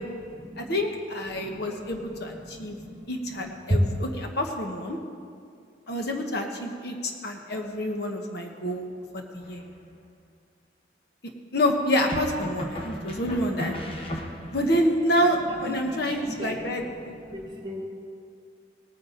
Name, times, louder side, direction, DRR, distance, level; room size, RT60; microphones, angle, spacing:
voice 1, 0.0-0.8 1.2-4.0 12.6-14.7 15.5-17.8, equal, 25° right, 0 dB, 1.8 m, -35 dB
voice 2, 0.6-2.8 3.1-3.8 4.4-5.0 5.9-9.6 11.5-14.1 14.5-16.8, equal, 55° left, 2 dB, 1.2 m, -27 dB
sound 1, 9.4-10.0 12.1-14.8, left 1 dB, 30° left, 1.0 m, -36 dB
18.5 x 9.4 x 3.9 m, 2.3 s
head